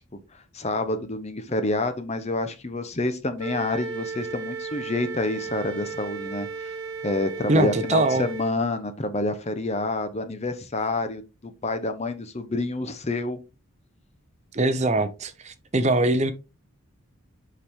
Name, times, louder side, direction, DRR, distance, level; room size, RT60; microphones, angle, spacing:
voice 1, 0.5-6.8 7.0-13.4, left 2 dB, 30° left, 0.8 m, -28 dB
Wind instrument woodwind instrument, 3.4-8.5, right 4 dB, 60° right, 0.9 m, -35 dB
voice 2, 7.5-8.2 14.5-16.3, right 2 dB, 30° right, 0.7 m, -22 dB
7.1 x 4.8 x 3.6 m
head